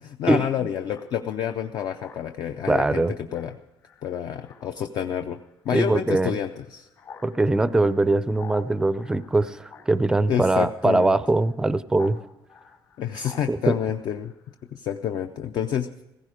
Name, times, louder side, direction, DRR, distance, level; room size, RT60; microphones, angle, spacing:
voice 1, 0.0-3.1 3.3-3.6 4.0-5.4 5.6-6.9 10.3-11.1 13.0-14.3 14.7-15.9, left 9 dB, 60° left, 8 dB, 0.5 m, -28 dB
Speech synthesizer, 0.9-12.2 12.5-14.7, left 6 dB, 85° left, 4.8 m, -49 dB
voice 2, 2.7-3.1 5.7-6.3 7.2-12.2 13.5-13.8, right 2 dB, 10° right, 15 dB, 0.4 m, -22 dB
16.0 x 15.0 x 5.0 m, 0.98 s
cardioid pair, 175°, 8 cm